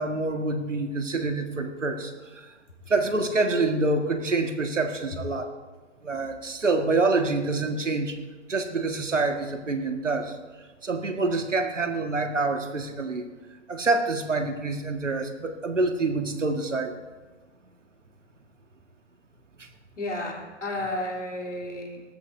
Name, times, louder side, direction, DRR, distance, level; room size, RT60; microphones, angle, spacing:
voice 1, 0.0-2.5 2.9-5.5 6.0-8.2 8.5-10.4 10.8-13.3 13.7-16.9 19.6-19.7, right 3 dB, 75° right, 5 dB, 1.8 m, -26 dB
voice 2, 20.0-22.0, left 1 dB, 75° left, -1 dB, 3.4 m, -32 dB
19.5 x 14.0 x 2.7 m, 1.3 s
figure-of-eight pair, 120°, 37 cm